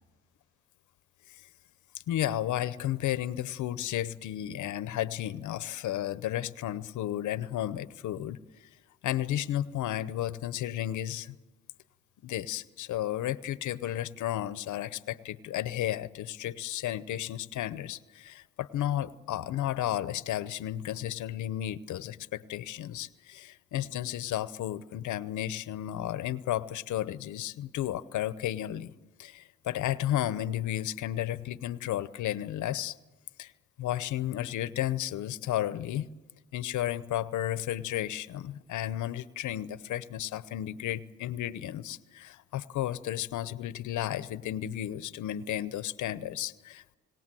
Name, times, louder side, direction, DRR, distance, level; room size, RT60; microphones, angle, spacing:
voice 1, 2.1-8.7 9.0-11.4 12.2-28.9 29.2-33.0 33.4-33.5 33.8-36.1 36.5-47.0, left 12 dB, 75° left, 16 dB, 0.8 m, -33 dB
29.5 x 18.0 x 7.6 m, 1.2 s
cardioid pair, 90°, 30 cm